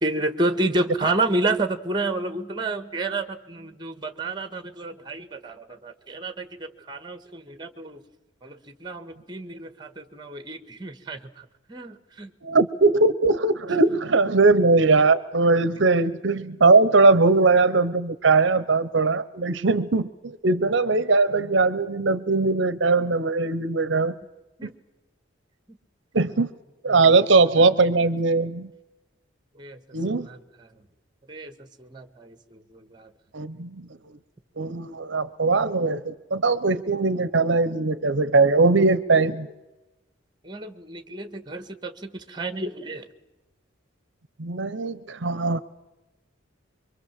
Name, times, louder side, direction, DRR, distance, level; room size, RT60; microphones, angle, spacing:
voice 1, 0.0-8.0 8.4-12.3 24.6-24.7 29.5-30.0 30.2-30.7 31.3-33.1 40.4-43.1, right 2 dB, 20° right, 11 dB, 1.5 m, -30 dB
voice 2, 12.4-24.1 24.6-24.7 26.1-26.5 26.8-28.7 29.9-30.3 33.3-33.9 34.6-39.5 44.4-45.6, right 3 dB, 65° right, 15 dB, 0.8 m, -20 dB
25.0 x 24.0 x 7.4 m, 1.1 s
head